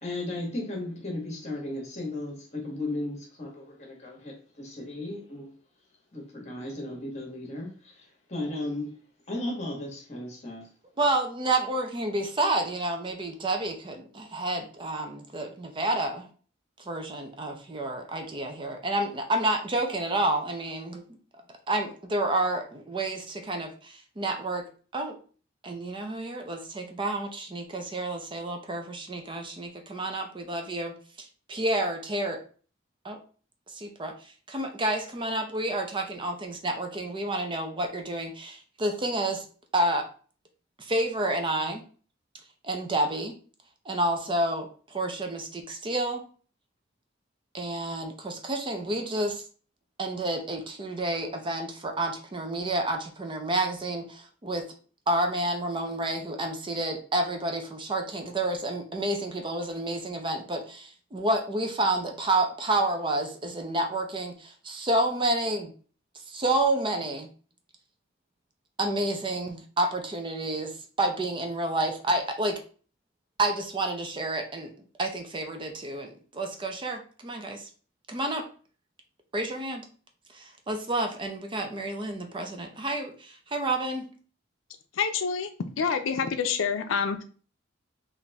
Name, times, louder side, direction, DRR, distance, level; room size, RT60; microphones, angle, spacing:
voice 1, 0.0-5.5 6.1-8.9 9.3-10.7, left 1 dB, 35° left, 1 dB, 1.3 m, -35 dB
voice 2, 11.0-16.3 16.9-21.0 21.7-24.7 24.9-25.2 25.6-32.4 33.0-33.2 33.7-34.1 34.5-39.4 39.7-40.1 40.8-41.8 42.6-43.3 43.9-46.2 47.5-49.4 50.0-54.7 55.1-65.7 66.3-67.3 68.8-72.6 73.4-74.7 75.0-77.7 78.1-78.5 79.3-79.8 80.3-84.1, right 1 dB, 25° right, 4 dB, 0.6 m, -29 dB
voice 3, 85.0-85.5 85.8-87.2, left 6 dB, 85° left, 8 dB, 0.4 m, -27 dB
4.1 x 2.6 x 3.4 m, 0.40 s
head